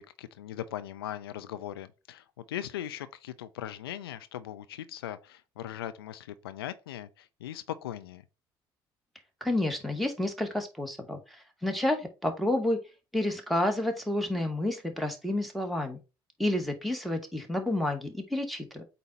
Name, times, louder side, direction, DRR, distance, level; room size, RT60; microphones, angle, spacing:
voice 1, 0.0-8.2, left 11 dB, 85° left, 0.5 m, -39 dB
voice 2, 9.4-11.2 11.6-12.8 13.1-16.0 16.4-18.8, left 1 dB, ahead, 2.1 m, -29 dB
8.2 x 2.8 x 5.4 m
hypercardioid pair, 50°, 12 cm